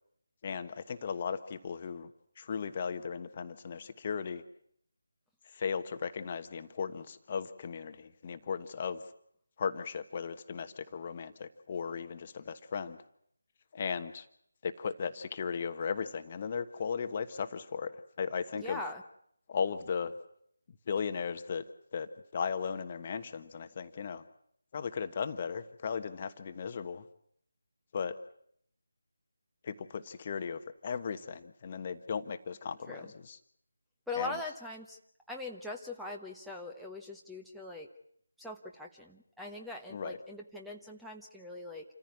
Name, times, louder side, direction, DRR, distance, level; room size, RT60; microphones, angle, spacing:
voice 1, 0.4-2.1 2.4-4.4 5.5-9.0 9.6-13.0 13.7-14.3 14.6-18.8 19.5-20.1 20.9-21.6 21.9-24.2 24.7-27.0 27.9-28.2 29.6-33.4 34.1-34.4 39.9-40.2, left 6 dB, 35° left, 10 dB, 1.3 m, -36 dB
voice 2, 18.6-19.0 32.9-33.1 34.1-35.0 35.3-37.9 38.4-41.8, left 3 dB, ahead, 0 dB, 1.2 m, -41 dB
28.0 x 15.0 x 9.7 m, 0.70 s
figure-of-eight pair, 155°, 0 cm